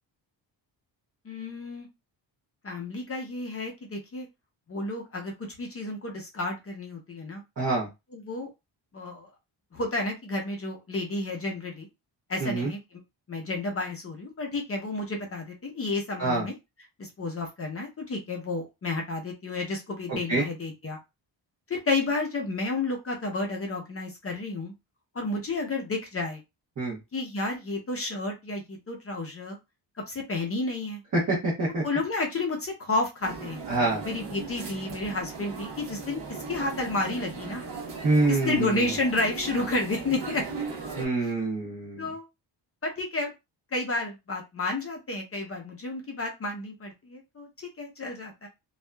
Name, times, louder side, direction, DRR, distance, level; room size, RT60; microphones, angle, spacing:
voice 1, 1.2-1.9 2.6-4.3 4.7-7.4 8.1-8.5 8.9-9.3 9.7-11.9 12.3-13.0 13.3-16.5 17.0-21.0 21.7-24.7 25.1-26.4 27.1-29.6 30.1-31.0 31.8-33.6 34.0-37.6 38.3-40.5 41.2-41.3 42.0-42.2 42.8-43.3 43.7-48.5, left 2 dB, 30° left, 2 dB, 0.6 m, -31 dB
voice 2, 7.6-7.9 12.4-12.7 16.2-16.4 20.1-20.4 26.8-27.0 31.1-31.8 33.7-34.0 38.0-38.9 41.0-42.1, right 2 dB, 40° right, -6 dB, 1.0 m, -26 dB
sound 1, 33.2-41.1, right 4 dB, 60° right, 1.1 m, -38 dB
2.7 x 2.3 x 2.2 m, 0.23 s
wide cardioid pair, 150°, 46 cm